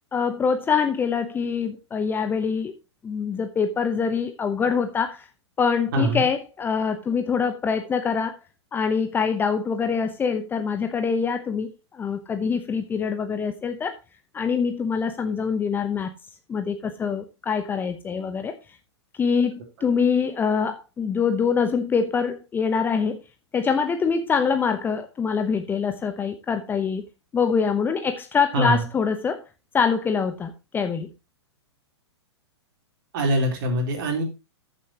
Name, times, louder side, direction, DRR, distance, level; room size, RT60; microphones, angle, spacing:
voice 1, 0.1-2.7 3.0-5.3 5.6-8.4 8.7-13.9 14.3-16.1 16.5-18.6 19.2-23.2 23.5-27.0 27.3-29.4 29.7-31.1, left 6 dB, 15° left, 0.9 m, -24 dB
voice 2, 5.9-6.2 28.5-28.8 33.1-34.2, right 1 dB, 45° right, 3.8 m, -23 dB
14.5 x 7.1 x 2.9 m
figure-of-eight pair, 110°, 15 cm